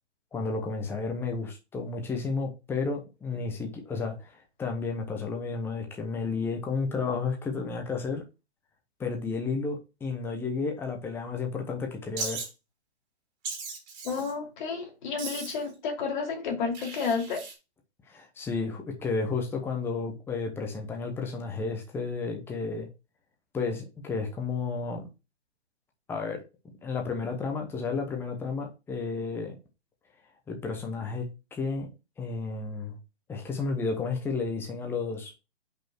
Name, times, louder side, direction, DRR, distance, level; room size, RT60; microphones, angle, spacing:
voice 1, 0.3-8.2 9.0-12.4 18.1-22.9 23.5-25.0 26.1-26.4 26.8-29.6 30.5-31.3 31.5-31.9 32.2-33.0 33.3-35.3, left 4 dB, 5° left, 1.0 m, -32 dB
Wild animals, 12.2-12.5 13.4-14.3 15.2-15.7 16.7-17.5, right 4 dB, 30° right, 2.9 m, -37 dB
voice 2, 14.0-17.4, left 5 dB, 45° left, 2.7 m, -31 dB
5.6 x 4.3 x 6.1 m
hypercardioid pair, 140°, 34 cm